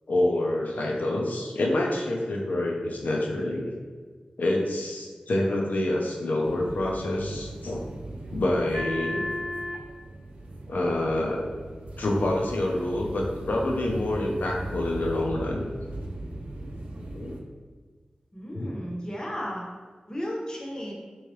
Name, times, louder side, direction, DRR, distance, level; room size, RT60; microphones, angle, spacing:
voice 1, 0.1-3.7 4.4-7.8 8.3-9.3 10.7-11.4 12.0-15.7 17.1-17.4 18.5-18.7, left 1 dB, 75° left, -1 dB, 0.6 m, -27 dB
sound 1, 6.4-17.4, right 1 dB, 60° right, 0.6 m, -37 dB
voice 2, 18.3-19.7 20.1-20.9, equal, 30° left, -3 dB, 0.8 m, -34 dB
3.5 x 3.1 x 3.1 m, 1.5 s
wide cardioid pair, 80°, 3 cm